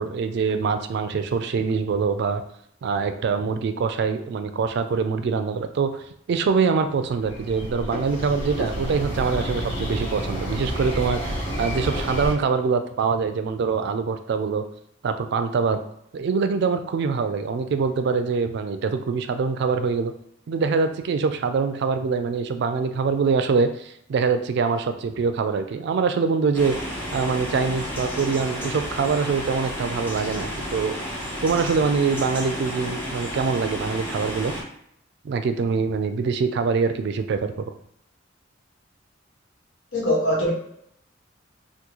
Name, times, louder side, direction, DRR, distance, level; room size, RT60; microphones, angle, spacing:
voice 1, 0.0-2.4 2.8-14.7 15.0-15.8 16.1-20.1 20.5-26.8 27.1-30.9 31.4-34.5 35.2-37.5, right 5 dB, 60° right, 9 dB, 0.3 m, -24 dB
sound 1, 7.2-12.3, equal, 65° left, 1.3 m, -29 dB
sound 2, 26.5-34.6, equal, 10° left, 0.7 m, -32 dB
voice 2, 39.9-40.5, equal, 90° left, -5 dB, 1.4 m, -22 dB
3.5 x 2.3 x 2.9 m, 0.71 s
head